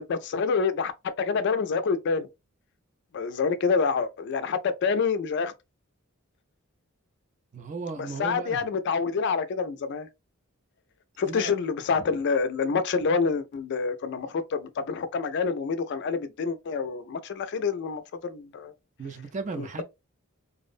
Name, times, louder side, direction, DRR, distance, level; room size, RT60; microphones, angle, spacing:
voice 1, 0.0-2.3 3.1-5.5 8.0-10.1 11.2-18.7 19.5-19.8, left 5 dB, 55° left, 0.3 m, -27 dB
voice 2, 7.5-8.6 11.2-11.5 19.0-19.8, right 4 dB, 35° right, 0.4 m, -35 dB
2.5 x 2.0 x 2.4 m
head